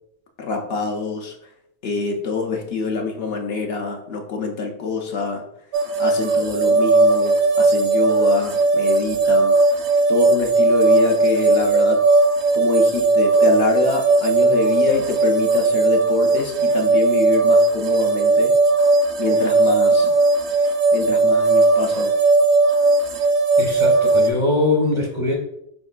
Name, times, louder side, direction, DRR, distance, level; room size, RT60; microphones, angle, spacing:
voice 1, 0.4-1.4 1.8-5.4 6.0-9.6 10.1-12.0 12.5-18.5 19.2-20.1 20.9-22.1, left 4 dB, 65° left, 2 dB, 0.8 m, -25 dB
sound 1, 5.7-24.3, right 3 dB, 75° right, 0.9 m, -17 dB
voice 2, 23.6-25.4, left 2 dB, 20° left, 0 dB, 0.4 m, -21 dB
4.3 x 3.7 x 2.4 m, 0.75 s
omnidirectional pair, 1.2 m